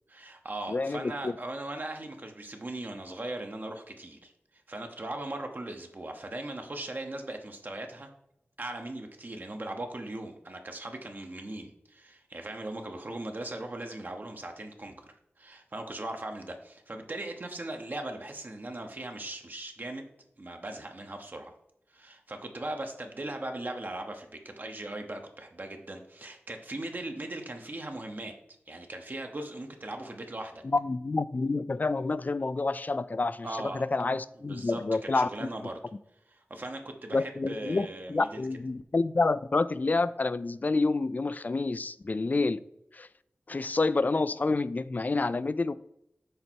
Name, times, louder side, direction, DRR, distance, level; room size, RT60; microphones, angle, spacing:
voice 1, 0.1-8.1 8.6-20.1 20.4-21.5 21.9-28.3 28.7-30.6 33.4-33.8 34.5-34.8 35.1-35.8 36.3-38.5, right 2 dB, 45° right, 4 dB, 0.9 m, -39 dB
voice 2, 0.7-1.3 30.6-33.5 33.7-35.5 37.1-42.6 42.9-43.1 43.5-45.7, left 3 dB, 40° left, 16 dB, 0.3 m, -28 dB
6.6 x 4.3 x 4.5 m, 0.79 s
wide cardioid pair, 70°, 4 cm